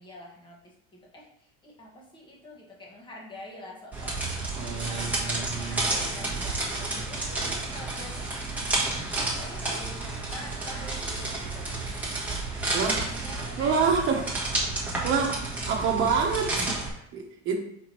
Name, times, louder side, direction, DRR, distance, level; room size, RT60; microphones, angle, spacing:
voice 1, 0.0-4.4 4.8-8.3 9.2-12.1 12.9-14.3, left 1 dB, 15° left, -2 dB, 1.4 m, -46 dB
sound 1, 3.9-16.9, right 2 dB, 5° right, 1.5 m, -31 dB
voice 2, 4.5-5.8 6.9-7.0 12.7-13.2 13.6-14.2 15.0-15.4 15.7-17.6, right 5 dB, 40° right, 1 dB, 1.3 m, -27 dB
4.9 x 4.4 x 4.6 m, 0.76 s
cardioid pair, 160°, 29 cm